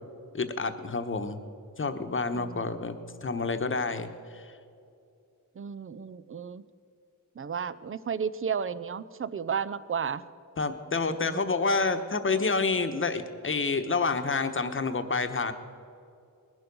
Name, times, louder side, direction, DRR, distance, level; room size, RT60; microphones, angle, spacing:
voice 1, 0.3-1.4 1.8-4.4 10.6-15.5, left 4 dB, 35° left, 8 dB, 1.1 m, -28 dB
voice 2, 5.6-6.6 7.4-10.2 11.0-11.4, right 6 dB, 40° right, 15 dB, 0.6 m, -33 dB
19.5 x 11.5 x 5.4 m, 2.5 s
wide cardioid pair, 95°, 34 cm